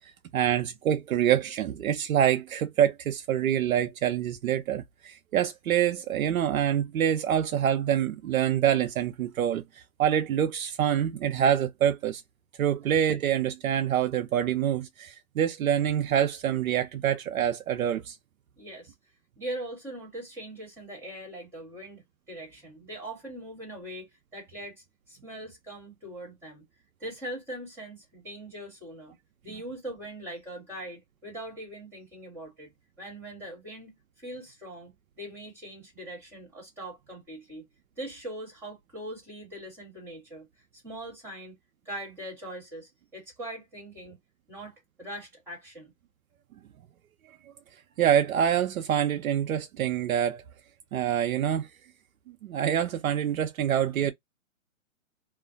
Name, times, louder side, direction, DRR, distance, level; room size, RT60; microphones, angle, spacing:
voice 1, 0.3-12.2 12.6-18.2 48.0-50.4 50.9-51.7 52.4-54.1, right 10 dB, 80° right, 0.5 m, -26 dB
voice 2, 18.6-18.9 19.4-22.0 22.3-26.6 27.0-29.2 29.4-32.7 33.0-37.7 38.0-40.5 40.7-41.6 41.8-44.2 44.5-45.9 50.9-51.1, right 1 dB, 5° right, 1.3 m, -41 dB
2.4 x 2.0 x 2.5 m
hypercardioid pair, 150°, 41 cm